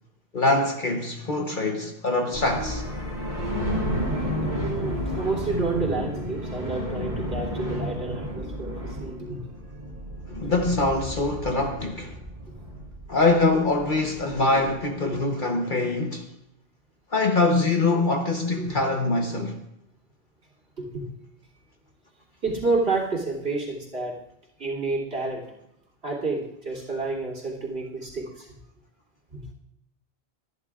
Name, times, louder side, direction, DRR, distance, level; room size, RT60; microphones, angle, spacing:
voice 1, 0.3-2.8 10.3-12.2 13.1-16.3 17.1-19.6, left 2 dB, 50° left, 1.1 m, -24 dB
sound 1, 2.3-14.8, equal, 40° right, 3.5 m, -32 dB
voice 2, 4.6-9.4 10.5-10.6 15.0-15.2 18.6-18.8 20.8-21.1 22.4-24.2 24.6-25.5 26.0-28.5 29.3-29.5, right 3 dB, 65° right, 3.3 m, -29 dB
24.5 x 11.0 x 2.5 m
omnidirectional pair, 1.1 m